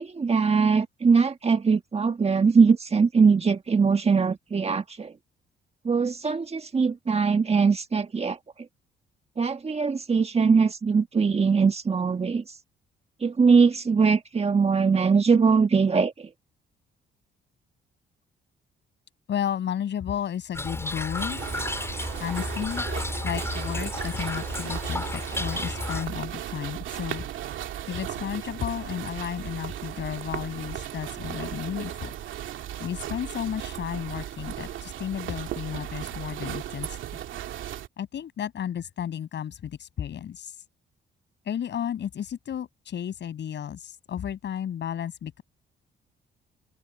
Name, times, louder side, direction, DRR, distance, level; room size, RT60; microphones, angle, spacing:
voice 1, 0.0-5.1 5.8-8.4 9.4-12.4 13.2-16.3, right 5 dB, 30° right, 1.6 m, -21 dB
voice 2, 19.3-21.4 22.2-22.9 23.2-27.2 27.9-32.1 32.8-37.0 38.0-40.6 41.4-45.4, left 9 dB, 65° left, 7.7 m, -33 dB
Toilet flush / Trickle dribble, 20.5-26.1, left 2 dB, 15° left, 5.3 m, -32 dB
sound 1, 21.2-37.9, right 11 dB, 80° right, 2.3 m, -36 dB
open air
cardioid pair, 90°, 20 cm